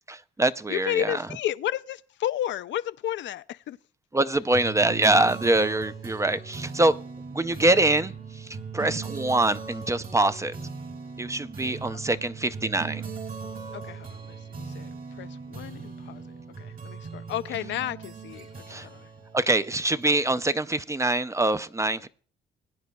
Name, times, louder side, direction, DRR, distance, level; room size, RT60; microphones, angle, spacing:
voice 1, 0.1-1.2 4.1-7.0 7.3-10.6 11.2-13.1 18.7-18.9 19.3-22.1, right 2 dB, 15° right, 0.4 m, -24 dB
voice 2, 0.7-3.8 11.9-12.2 13.7-14.9 15.2-16.2 16.6-19.1, left 12 dB, 65° left, 0.4 m, -32 dB
sound 1, 4.5-20.4, right 5 dB, 45° right, 2.1 m, -39 dB
21.0 x 9.4 x 2.2 m
cardioid pair, 90°, 20 cm